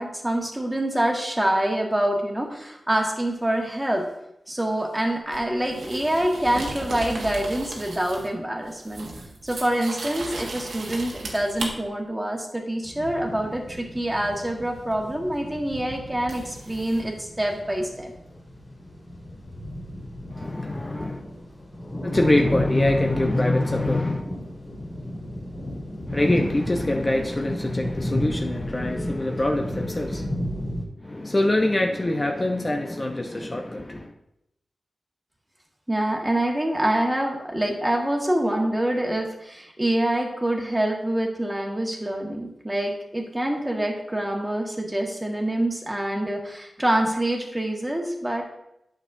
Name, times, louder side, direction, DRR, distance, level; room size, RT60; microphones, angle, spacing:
voice 1, 0.0-4.1 4.5-9.1 9.4-18.1 35.9-48.4, right 1 dB, 15° right, 1 dB, 1.6 m, -26 dB
sound 1, 5.3-8.4 8.6-11.7 14.9-15.0 16.3-17.0, right 2 dB, 85° right, 1.3 m, -36 dB
sound 2, 12.8-30.9, equal, 50° left, 2.9 m, -33 dB
voice 2, 20.3-21.2 22.0-24.2 26.1-30.3 31.0-34.1, left 1 dB, 30° left, 2 dB, 0.7 m, -24 dB
9.2 x 6.3 x 2.6 m, 0.82 s
cardioid pair, 50°, 0 cm